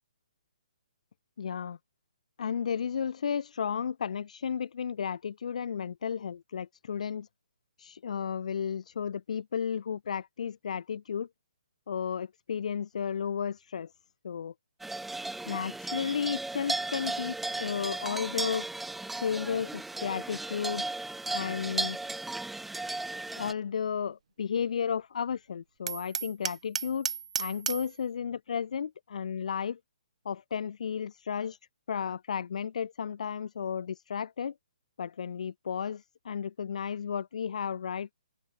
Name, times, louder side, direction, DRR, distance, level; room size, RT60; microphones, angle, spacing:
voice 1, 1.4-1.8 2.4-7.3 7.8-11.3 11.9-13.9 14.2-14.5 15.5-18.7 19.1-20.9 21.3-22.0 23.4-27.1 27.4-29.8 30.2-31.6 31.9-34.5 35.0-38.1, left 7 dB, 65° left, 0.4 m, -33 dB
sound 1, 14.8-23.5, right 2 dB, 5° right, 0.9 m, -35 dB
Hammer, 25.9-27.9, right 7 dB, 60° right, 1.5 m, -34 dB
open air
hypercardioid pair, 150°, 4 cm